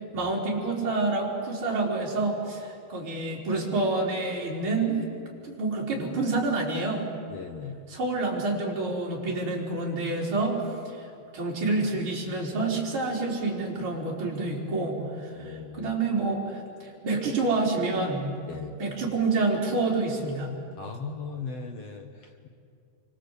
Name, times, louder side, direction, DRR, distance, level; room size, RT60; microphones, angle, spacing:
voice 1, 0.1-5.1 5.4-7.0 7.9-11.0 11.3-18.3 18.8-20.5, right 3 dB, 35° right, -3 dB, 5.1 m, -28 dB
voice 2, 7.3-7.8 15.3-15.9 18.5-18.8 20.8-22.5, left 5 dB, 55° left, 4 dB, 2.0 m, -38 dB
27.5 x 25.0 x 8.4 m, 2.4 s
omnidirectional pair, 4.1 m